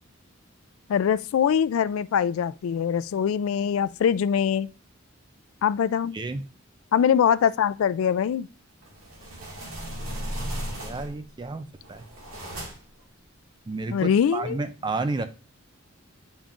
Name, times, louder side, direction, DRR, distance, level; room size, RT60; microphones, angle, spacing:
voice 1, 0.9-4.7 5.6-6.2 6.9-8.5 13.9-14.6, left 8 dB, 70° left, 0.3 m, -23 dB
sound 1, 8.8-11.3 11.8-13.0, equal, 75° right, 1.9 m, -35 dB
voice 2, 10.8-12.1 13.7-15.2, right 3 dB, 20° right, 0.4 m, -31 dB
8.9 x 5.3 x 2.4 m
head